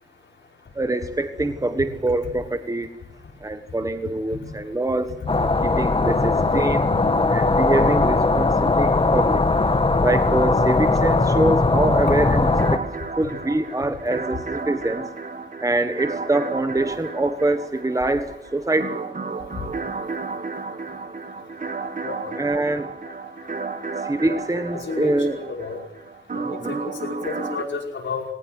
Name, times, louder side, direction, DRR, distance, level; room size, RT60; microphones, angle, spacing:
voice 1, 0.7-2.9 3.4-5.1 5.6-6.9 7.3-9.4 10.0-12.8 13.2-15.0 15.6-19.0 22.4-22.9 24.0-25.4 26.4-26.7, right 2 dB, 15° right, 9 dB, 1.5 m, -24 dB
sound 1, 5.3-12.8, left 3 dB, 30° left, 1.5 m, -19 dB
sound 2, 12.5-27.6, right 4 dB, 45° right, 2.0 m, -33 dB
voice 2, 22.0-22.6 24.3-24.4 24.7-25.8 26.7-26.8 27.0-28.2, left 4 dB, 75° left, 1 dB, 5.2 m, -31 dB
21.0 x 18.5 x 7.9 m, 0.83 s
wide cardioid pair, 85°, 19 cm